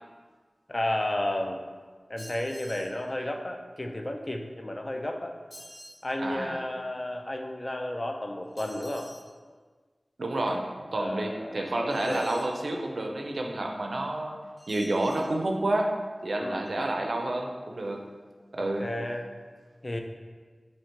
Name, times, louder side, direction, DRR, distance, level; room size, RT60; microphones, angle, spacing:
voice 1, 0.7-1.6 2.1-5.4 6.0-9.1 10.9-12.3 16.4-16.9 18.6-19.3 19.8-20.0, left 1 dB, 35° left, 3 dB, 0.3 m, -33 dB
sound 1, 2.2-3.0 5.5-6.0 8.6-9.3 11.9-12.5 14.6-15.3, equal, 10° left, 1.1 m, -48 dB
voice 2, 6.2-6.6 10.2-14.4 14.7-16.0 16.2-18.1 18.5-18.9, right 1 dB, 70° right, 2 dB, 0.4 m, -29 dB
2.9 x 2.8 x 4.4 m, 1.5 s
wide cardioid pair, 75°, 0 cm